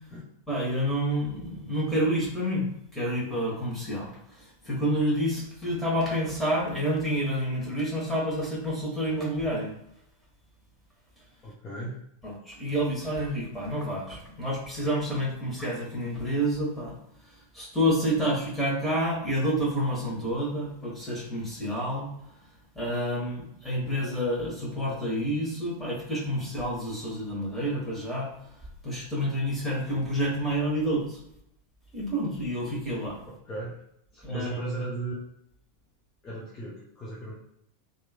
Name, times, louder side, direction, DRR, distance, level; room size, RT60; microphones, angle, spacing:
voice 1, 0.5-2.7 2.9-9.7 12.2-17.0 17.5-22.1 22.7-28.3 28.8-31.2 31.9-33.2 34.2-34.6, equal, 5° left, -5 dB, 1.3 m, -29 dB
voice 2, 11.4-12.0 33.3-33.8 34.1-35.2 36.2-37.3, right 2 dB, 25° left, -5 dB, 0.6 m, -36 dB
3.0 x 2.5 x 2.3 m, 0.74 s
figure-of-eight pair, 90°, 0 cm